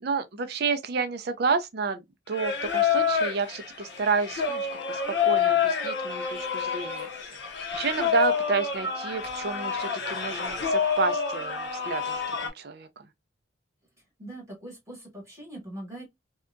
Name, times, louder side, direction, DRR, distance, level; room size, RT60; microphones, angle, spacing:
voice 1, 0.0-7.1 7.7-13.1, right 4 dB, 50° right, 0.4 m, -30 dB
Singing, 2.3-12.5, left 6 dB, 55° left, 0.7 m, -28 dB
voice 2, 14.2-16.0, right 1 dB, 15° right, 1.1 m, -41 dB
2.7 x 2.2 x 2.4 m
head